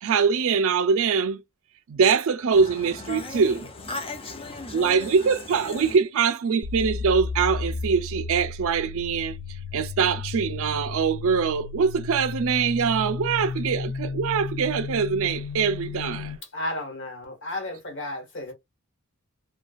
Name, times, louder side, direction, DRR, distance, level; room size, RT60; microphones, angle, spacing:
voice 1, 0.0-1.4 1.9-3.7 4.7-9.4 9.7-16.3, right 6 dB, 70° right, 0.4 m, -23 dB
voice 2, 2.5-6.0, left 2 dB, 25° left, 0.6 m, -37 dB
sound 1, 6.6-16.4, left 4 dB, 80° left, 0.4 m, -33 dB
voice 3, 16.5-18.5, left 1 dB, 60° left, 1.2 m, -33 dB
2.5 x 2.2 x 2.3 m
head